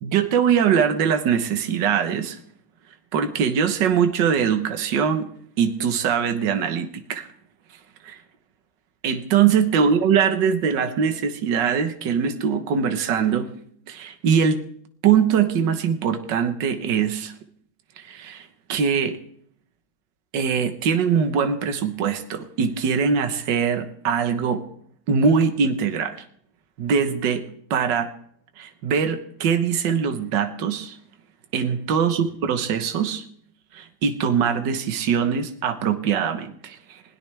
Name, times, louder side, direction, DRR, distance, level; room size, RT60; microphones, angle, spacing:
voice 1, 0.0-2.4 3.1-5.3 5.6-7.3 8.0-8.2 9.0-13.5 13.9-14.6 15.0-17.3 18.0-19.2 20.3-24.6 25.1-26.2 26.8-27.4 27.7-28.1 28.6-31.0 31.5-33.2 33.7-37.0, right 7 dB, 65° right, 8 dB, 1.8 m, -22 dB
21.0 x 17.0 x 3.4 m, 0.62 s
omnidirectional pair, 2.2 m